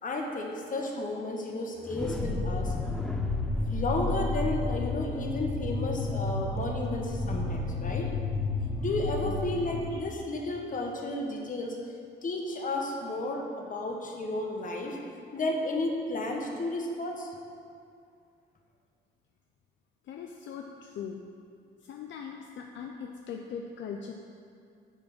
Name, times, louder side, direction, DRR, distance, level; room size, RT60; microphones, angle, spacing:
voice 1, 0.0-2.7 3.7-8.1 8.8-11.8 12.2-15.0 15.3-17.3, left 2 dB, 40° left, 1 dB, 1.2 m, -32 dB
sound 1, 1.7-7.6, left 1 dB, ahead, 0.5 m, -40 dB
sound 2, 2.0-9.8, left 2 dB, 20° left, 1.8 m, -31 dB
voice 2, 20.1-21.2 21.8-24.1, left 6 dB, 70° left, 2 dB, 0.5 m, -40 dB
9.1 x 3.6 x 6.0 m, 2.4 s
cardioid pair, 90°, 20 cm